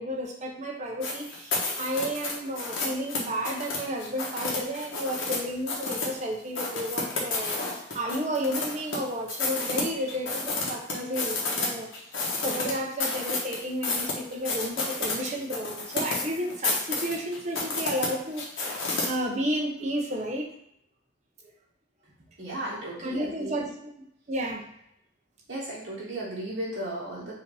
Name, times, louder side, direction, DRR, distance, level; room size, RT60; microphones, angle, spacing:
voice 1, 0.0-20.5 23.0-23.6 24.3-24.7, equal, 35° right, -1 dB, 0.7 m, -32 dB
sound 1, 1.0-5.4 5.7-6.1 6.6-9.0 9.3-11.7 11.9-19.1, left 3 dB, 75° left, 1.0 m, -30 dB
voice 2, 22.4-23.7 25.5-27.3, right 1 dB, 55° right, -7 dB, 1.6 m, -35 dB
4.8 x 2.7 x 3.3 m, 0.73 s
head